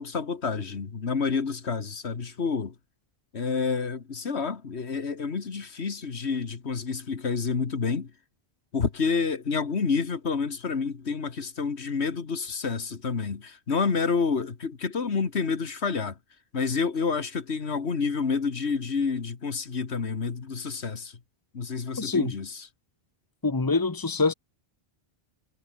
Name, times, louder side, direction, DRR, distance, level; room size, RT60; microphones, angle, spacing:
voice 1, 0.0-2.8 3.3-8.1 8.7-16.2 16.5-21.2 21.5-22.7, left 5 dB, 85° left, 2.0 m, -29 dB
voice 2, 22.0-22.3 23.4-24.3, left 3 dB, 20° left, 1.2 m, -25 dB
omnidirectional pair, 1.1 m